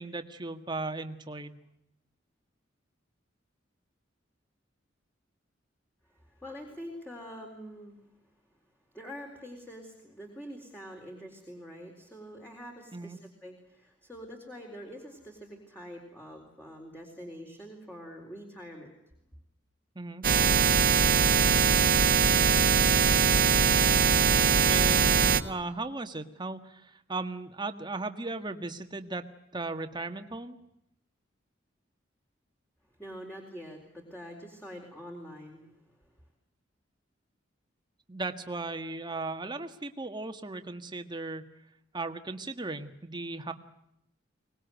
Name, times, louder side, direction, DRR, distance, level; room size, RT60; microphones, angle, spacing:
voice 1, 0.0-1.6 12.9-13.2 19.9-20.3 24.7-29.2 29.5-30.6 38.1-41.4 41.9-43.5, right 3 dB, 25° right, 7 dB, 1.7 m, -36 dB
voice 2, 6.0-8.0 8.9-18.9 33.0-36.0, equal, 10° left, 1 dB, 4.1 m, -45 dB
sound 1, 20.2-25.4, right 6 dB, 50° right, 1.6 m, -22 dB
24.5 x 20.0 x 9.2 m, 0.79 s
head